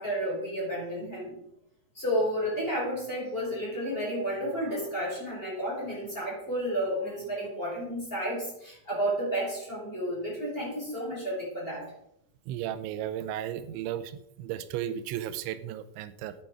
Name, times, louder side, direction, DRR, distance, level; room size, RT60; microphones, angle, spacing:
voice 1, 0.0-1.3 1.9-11.9, equal, 10° left, -5 dB, 5.0 m, -31 dB
voice 2, 12.5-16.3, right 11 dB, 85° right, 12 dB, 3.1 m, -35 dB
11.5 x 8.8 x 4.6 m, 0.78 s
omnidirectional pair, 5.2 m